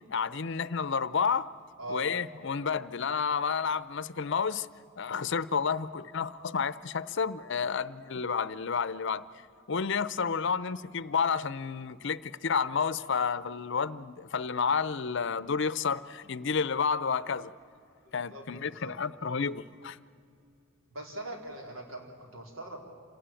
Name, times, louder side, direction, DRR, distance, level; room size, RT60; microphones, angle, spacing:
voice 1, 0.1-1.5 1.9-4.7 5.0-9.3 9.7-17.5 18.1-20.0, left 6 dB, 65° left, 0.6 m, -30 dB
voice 2, 1.8-2.1 18.3-18.9 20.9-22.8, right 1 dB, 85° right, 4.2 m, -41 dB
27.5 x 18.5 x 9.0 m
head